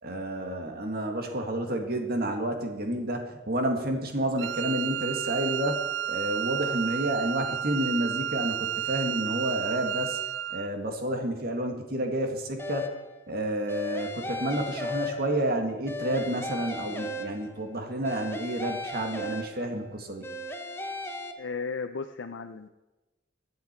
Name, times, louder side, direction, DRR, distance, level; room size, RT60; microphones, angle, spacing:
voice 1, 0.0-5.8 6.1-10.2 10.5-12.9 13.3-20.3, right 1 dB, 55° right, 4 dB, 1.9 m, -30 dB
Wind instrument woodwind instrument, 4.4-10.7, right 10 dB, 70° right, 0.4 m, -32 dB
sound 1, 12.6-13.2 13.7-15.5 15.9-17.7 18.0-19.8 20.2-21.3, left 2 dB, 15° left, 0.9 m, -36 dB
voice 2, 21.4-22.7, left 5 dB, 85° left, 8 dB, 0.6 m, -35 dB
21.5 x 7.7 x 4.5 m, 1.1 s
head